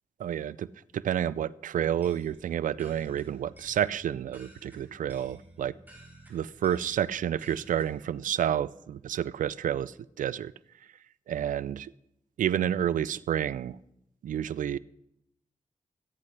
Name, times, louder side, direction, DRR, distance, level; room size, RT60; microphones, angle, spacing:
voice 1, 0.2-0.7 0.9-5.7 6.3-10.5 11.3-11.9 12.4-13.8 14.2-14.8, right 10 dB, 90° right, 19 dB, 0.4 m, -30 dB
sound 1, 1.7-8.2, right 1 dB, 15° right, 5.1 m, -53 dB
26.0 x 10.0 x 3.3 m, 0.81 s
cardioid pair, 75°, 13 cm